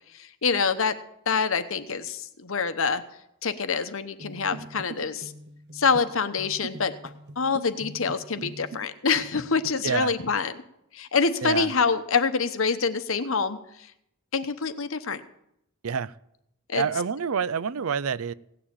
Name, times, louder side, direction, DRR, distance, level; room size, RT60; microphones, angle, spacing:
voice 1, 0.1-0.9 1.3-3.0 3.4-5.3 5.7-10.5 10.9-13.9 14.3-15.2 16.7-16.8, left 5 dB, 70° left, 1.0 m, -26 dB
sound 1, 4.2-8.9 9.1-10.0, right 2 dB, 50° right, 0.9 m, -43 dB
voice 2, 9.8-10.1 11.4-11.7 15.8-16.1 16.7-18.3, right 6 dB, 85° right, 0.5 m, -27 dB
17.0 x 6.9 x 8.8 m
head